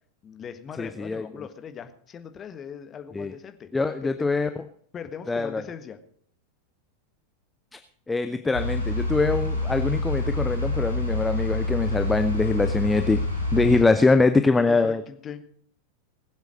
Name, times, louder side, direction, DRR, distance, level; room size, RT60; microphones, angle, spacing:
voice 1, 0.2-3.7 4.0-4.2 4.9-6.0 13.5-13.6 14.0-14.1 14.7-15.4, left 7 dB, 25° left, 8 dB, 1.5 m, -39 dB
voice 2, 0.8-1.2 3.1-3.3 3.7-4.5 5.3-5.6 8.1-13.2 13.5-15.0, left 3 dB, 10° left, 9 dB, 0.7 m, -23 dB
sound 1, 8.5-13.8, left 2 dB, 90° left, 3.3 m, -27 dB
20.0 x 8.1 x 5.2 m, 0.62 s
figure-of-eight pair, 90°, 0 cm